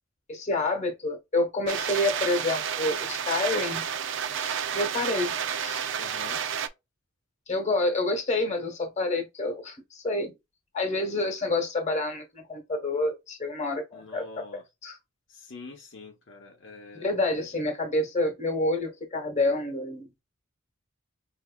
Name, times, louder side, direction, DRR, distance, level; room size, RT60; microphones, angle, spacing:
voice 1, 0.3-3.9 4.2-5.9 7.5-10.3 10.7-14.3 14.8-15.0 16.9-20.1, left 2 dB, 35° left, 1.2 m, -28 dB
sound 1, 1.7-6.7, right 8 dB, 60° right, 0.5 m, -30 dB
voice 2, 6.0-6.4 13.9-14.6 15.3-17.5, left 3 dB, 60° left, 0.9 m, -45 dB
4.8 x 2.6 x 2.3 m
head